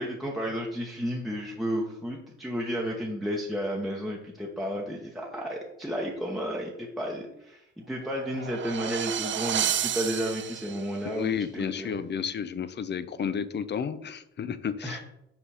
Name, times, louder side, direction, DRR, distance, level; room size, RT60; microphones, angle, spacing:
voice 1, 0.0-12.0 14.8-15.0, equal, ahead, -2 dB, 0.9 m, -32 dB
sound 1, 8.0-11.0, right 10 dB, 40° right, 0.4 m, -31 dB
voice 2, 11.0-15.0, left 7 dB, 35° left, 14 dB, 0.5 m, -32 dB
5.8 x 4.1 x 4.8 m, 0.83 s
cardioid pair, 90°, 30 cm